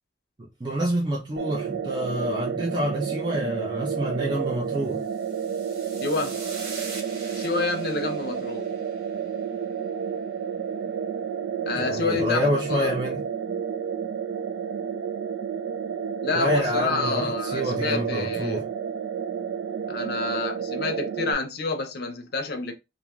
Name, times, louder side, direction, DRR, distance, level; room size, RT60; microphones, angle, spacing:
voice 1, 0.6-5.0 11.7-13.2 16.3-18.6, equal, 25° right, 0.6 m, -27 dB
sound 1, 1.4-21.3, right 7 dB, 75° right, 0.3 m, -31 dB
sound 2, 5.0-9.5, right 3 dB, 60° right, 1.5 m, -42 dB
voice 2, 6.0-6.4 7.4-8.7 11.7-12.9 16.2-18.6 19.9-22.7, left 3 dB, 60° left, 0.6 m, -28 dB
2.5 x 2.4 x 2.9 m
head